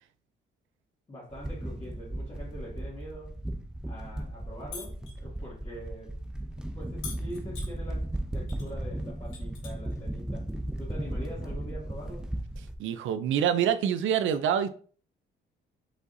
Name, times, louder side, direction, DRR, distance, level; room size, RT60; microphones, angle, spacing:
voice 1, 1.1-3.4 3.9-6.1 6.7-10.5 10.8-12.3, equal, 30° left, 2.3 m, -44 dB
sound 1, 1.3-12.7, right 1 dB, 5° right, 0.6 m, -36 dB
sound 2, 4.7-5.2 7.0-7.7 8.5-8.7 9.0-10.0 11.2-11.3, left 5 dB, 90° left, 2.2 m, -42 dB
voice 2, 12.8-14.7, right 9 dB, 75° right, 0.5 m, -26 dB
5.0 x 4.0 x 2.7 m
cardioid pair, 90°, 20 cm